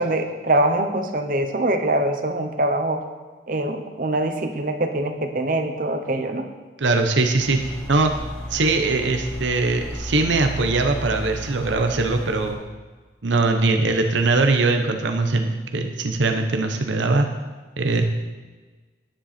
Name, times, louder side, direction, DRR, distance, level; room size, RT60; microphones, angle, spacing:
voice 1, 0.0-3.0 3.5-6.5, right 1 dB, 45° right, 6 dB, 0.9 m, -23 dB
voice 2, 6.8-8.1 8.5-12.6 13.2-17.3 17.8-18.0, right 3 dB, 75° right, 5 dB, 0.8 m, -21 dB
sound 1, 7.4-12.5, equal, 5° left, 1.9 m, -34 dB
10.0 x 10.0 x 4.3 m, 1.3 s
head